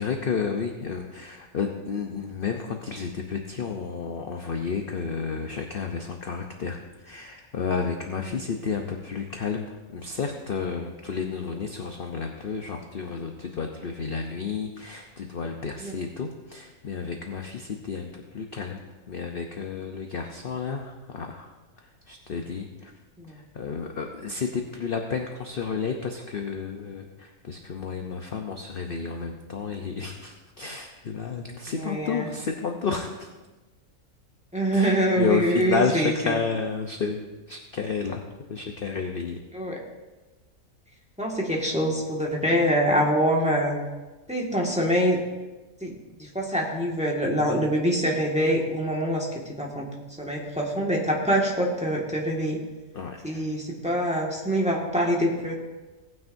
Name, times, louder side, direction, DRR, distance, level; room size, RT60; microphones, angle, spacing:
voice 1, 0.0-18.8 19.1-21.5 22.1-22.9 23.3-33.3 34.7-37.2 37.5-38.2 38.5-39.4 52.9-53.4, left 5 dB, 45° left, 3 dB, 0.8 m, -31 dB
voice 2, 31.7-32.3 34.5-36.4 39.5-39.8 41.2-43.8 44.3-45.2 45.8-49.8 50.2-52.6 53.2-55.6, equal, 5° right, -3 dB, 1.7 m, -25 dB
18.0 x 9.5 x 2.6 m, 1.2 s
omnidirectional pair, 1.5 m